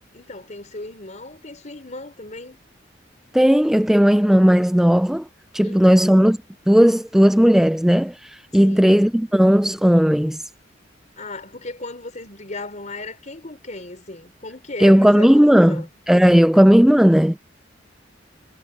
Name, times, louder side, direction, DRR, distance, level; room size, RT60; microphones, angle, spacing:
voice 1, 0.1-2.6 5.6-6.2 8.6-8.9 11.2-15.9, left 2 dB, 40° left, 4.3 m, -36 dB
voice 2, 3.3-5.2 5.5-6.4 6.7-10.4 14.8-17.4, equal, ahead, 0.3 m, -15 dB
head